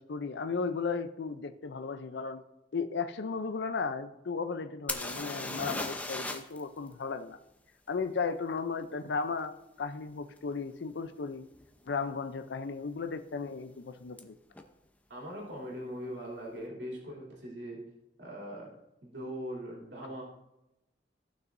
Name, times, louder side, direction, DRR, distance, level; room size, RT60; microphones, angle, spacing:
voice 1, 0.0-2.4 2.7-7.4 7.9-11.5 11.9-14.4, left 4 dB, 75° left, 10 dB, 0.5 m, -35 dB
sound 1, 4.9-6.6 6.9-7.0 10.4-10.5 11.1-11.3 11.5-12.1 14.2-14.3 14.5-14.6, left 2 dB, 10° left, 0.7 m, -37 dB
voice 2, 15.1-17.8 18.2-18.7 19.0-20.2, equal, 75° right, -3 dB, 2.9 m, -41 dB
17.0 x 6.1 x 2.6 m, 0.91 s
head